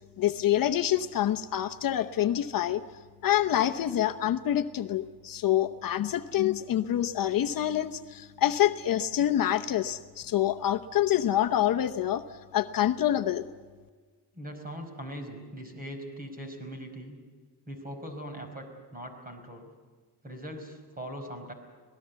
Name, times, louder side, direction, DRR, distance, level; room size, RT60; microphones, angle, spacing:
voice 1, 0.2-2.8 3.2-12.2 12.5-13.5, left 12 dB, 55° left, 7 dB, 0.9 m, -26 dB
voice 2, 14.3-17.2 17.7-19.7 20.2-21.5, equal, 20° right, 6 dB, 4.8 m, -41 dB
25.5 x 18.5 x 8.2 m, 1.5 s
cardioid pair, 130°, 40 cm